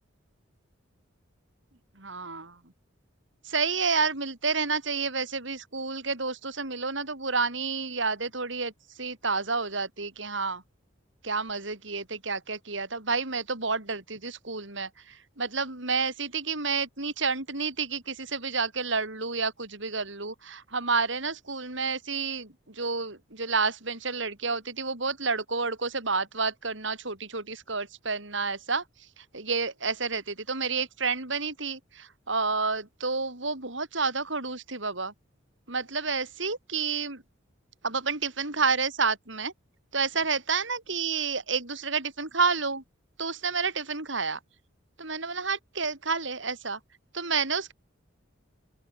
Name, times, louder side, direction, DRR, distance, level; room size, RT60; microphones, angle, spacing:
voice 1, 2.0-2.6 3.4-8.7 9.0-10.6 11.2-28.8 29.2-35.1 35.7-37.2 37.8-39.5 39.9-42.8 43.2-44.4 45.0-46.8 47.1-47.7, right 4 dB, 65° right, 4.5 m, -30 dB
open air
head